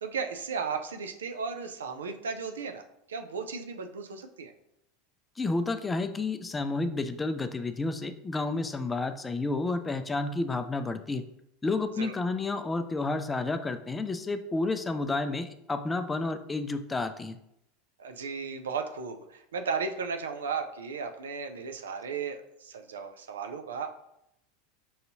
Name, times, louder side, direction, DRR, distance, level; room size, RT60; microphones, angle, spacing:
voice 1, 0.0-2.8 3.1-4.5 12.0-12.1 18.0-24.1, right 5 dB, 85° right, 6 dB, 0.4 m, -35 dB
voice 2, 5.4-11.2 11.6-17.4, left 3 dB, 15° left, 9 dB, 0.3 m, -30 dB
5.5 x 2.7 x 2.6 m, 0.80 s
hypercardioid pair, 90°, 0 cm